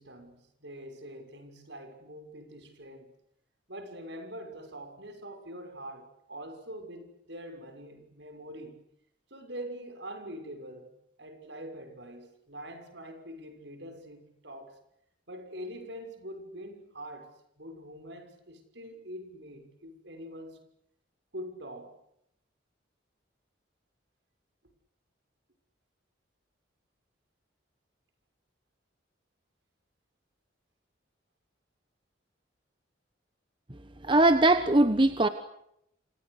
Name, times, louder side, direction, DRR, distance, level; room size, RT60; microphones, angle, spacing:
voice 1, 0.0-3.1 3.7-8.8 9.3-14.8 15.3-20.6 21.3-22.0, equal, 65° right, 6.3 m, -44 dB
voice 2, 34.0-35.3, right 2 dB, 25° right, 1.2 m, -21 dB
29.0 x 26.5 x 6.7 m
head